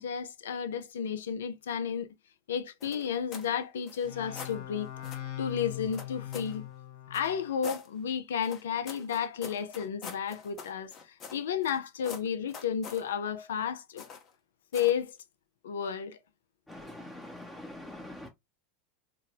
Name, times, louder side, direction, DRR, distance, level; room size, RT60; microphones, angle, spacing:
voice 1, 0.0-2.1 2.5-6.6 7.1-14.0 14.7-15.2 15.6-16.2, left 8 dB, 75° left, 0.5 m, -32 dB
sound 1, 2.8-3.5 3.8-4.6 5.0-5.3 5.9-6.6 7.1-7.9 8.4-11.8 12.0-13.1 14.0-14.3 14.7-15.0, left 6 dB, 40° left, 1.0 m, -45 dB
sound 2, 4.0-7.6, left 13 dB, 60° left, 1.3 m, -41 dB
voice 2, 16.7-18.3, left 1 dB, 10° left, 0.7 m, -44 dB
3.8 x 2.2 x 2.6 m
hypercardioid pair, 90°, 0 cm